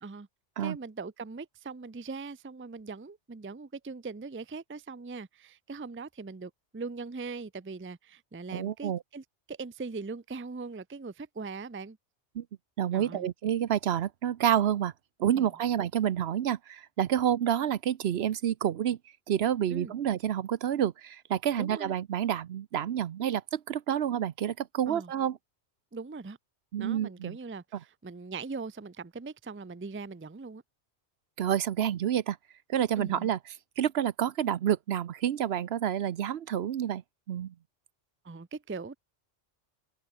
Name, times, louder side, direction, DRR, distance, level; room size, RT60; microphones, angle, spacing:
voice 1, 0.6-12.0 12.9-13.3 15.3-15.5 19.7-19.9 21.6-21.9 24.9-25.1 25.9-26.4 26.8-30.6 33.0-33.3 38.2-39.0, right 4 dB, 15° right, 0.4 m, -40 dB
voice 2, 8.5-9.0 12.3-12.4 12.8-14.9 15.2-19.0 19.3-25.4 26.7-27.4 31.4-32.4 32.7-33.4 33.8-37.0 37.3-37.5, right 10 dB, 65° right, 0.9 m, -28 dB
open air
omnidirectional pair, 1.2 m